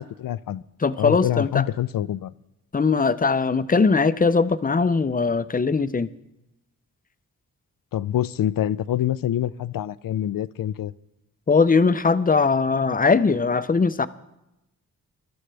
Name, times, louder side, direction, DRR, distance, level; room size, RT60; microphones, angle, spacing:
voice 1, 0.2-0.6 1.0-2.3 7.9-10.9, left 11 dB, 75° left, 17 dB, 0.5 m, -26 dB
voice 2, 0.8-1.6 2.7-6.1 11.5-14.1, left 4 dB, 25° left, 13 dB, 0.6 m, -20 dB
21.0 x 13.0 x 3.4 m, 0.89 s
cardioid pair, 85°, 35 cm